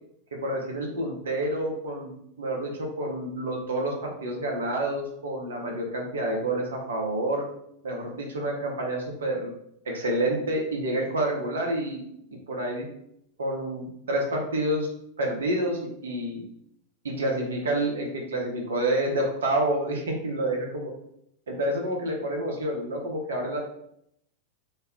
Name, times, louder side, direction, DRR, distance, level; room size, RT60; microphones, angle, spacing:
voice 1, 0.3-7.4 7.8-9.5 9.8-12.0 12.5-12.9 13.4-14.9 15.2-16.4 17.0-20.9 21.5-23.6, right 1 dB, 65° right, 0 dB, 0.7 m, -28 dB
2.2 x 2.1 x 3.6 m, 0.74 s
figure-of-eight pair, 90°, 0 cm